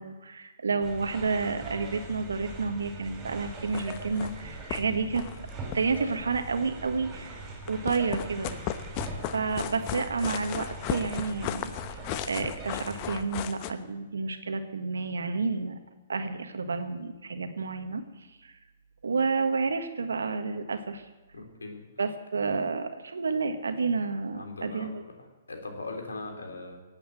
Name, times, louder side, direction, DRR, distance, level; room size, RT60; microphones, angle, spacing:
voice 1, 0.0-5.2 5.7-8.5 9.3-11.7 12.3-15.8 16.1-18.0 18.4-18.5 19.0-21.0 22.0-25.0, right 4 dB, 80° right, 8 dB, 1.6 m, -30 dB
sound 1, 0.8-13.2, right 2 dB, 25° right, 4.4 m, -42 dB
sound 2, 3.6-4.4 4.7-4.8 5.1-6.5 7.6-13.7, left 11 dB, 35° left, 0.9 m, -35 dB
voice 2, 21.3-21.8 24.3-24.9 25.2-26.8, left 3 dB, 85° left, 3 dB, 3.5 m, -40 dB
18.0 x 8.5 x 7.7 m, 1.2 s
hypercardioid pair, 130°, 0 cm